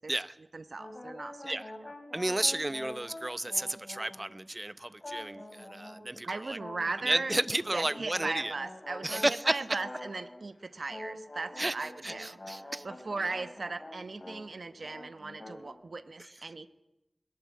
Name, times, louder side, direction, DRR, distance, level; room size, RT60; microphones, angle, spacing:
voice 1, 0.5-1.6 6.2-7.3 7.7-12.4 12.8-16.7, right 3 dB, 75° right, 1.0 m, -38 dB
sound 1, 0.8-4.5 5.0-6.1 6.6-10.5 10.9-14.5 14.7-15.7, left 1 dB, 45° left, 4.6 m, -46 dB
voice 2, 2.1-6.6 7.0-8.5 9.0-9.6 11.6-11.7 12.0-12.8 16.2-16.3, right 1 dB, 30° right, 0.8 m, -32 dB
21.0 x 18.5 x 8.5 m
wide cardioid pair, 55°, 0 cm